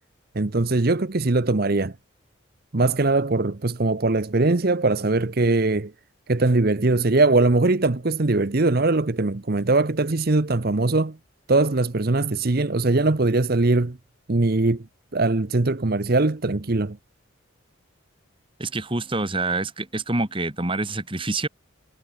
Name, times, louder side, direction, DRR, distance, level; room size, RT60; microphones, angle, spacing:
voice 1, 0.3-1.9 2.7-5.9 6.3-11.2 11.5-14.0 14.3-14.8 15.1-17.0, right 2 dB, 45° right, 0.8 m, -21 dB
voice 2, 18.6-21.5, right 2 dB, 25° right, 2.2 m, -26 dB
head